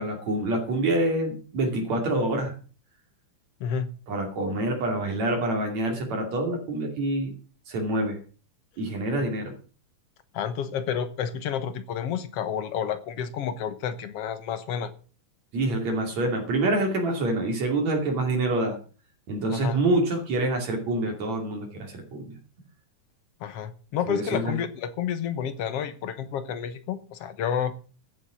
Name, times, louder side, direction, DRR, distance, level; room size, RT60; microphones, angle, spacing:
voice 1, 0.0-2.5 4.1-7.3 7.7-8.2 8.8-9.5 15.5-18.8 19.3-22.4 24.1-24.5, right 2 dB, 65° right, 1 dB, 3.9 m, -26 dB
voice 2, 10.3-14.9 19.5-19.8 23.4-27.7, left 8 dB, 60° left, 12 dB, 1.8 m, -30 dB
14.5 x 8.2 x 6.2 m, 0.39 s
omnidirectional pair, 3.5 m